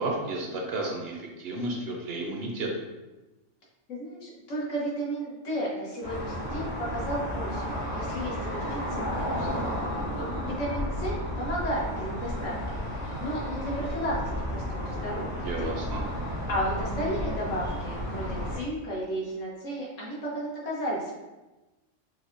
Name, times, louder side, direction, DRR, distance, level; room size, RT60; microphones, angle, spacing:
voice 1, 0.0-2.7 15.4-16.0, right 2 dB, 65° right, 0 dB, 0.7 m, -32 dB
voice 2, 3.9-9.5 10.2-12.8 13.0-14.2 14.5-15.7 16.5-21.1, equal, 80° left, -4 dB, 1.3 m, -33 dB
sound 1, 6.0-18.6, equal, 55° left, 1.3 m, -32 dB
4.6 x 2.1 x 2.5 m, 1.1 s
omnidirectional pair, 1.3 m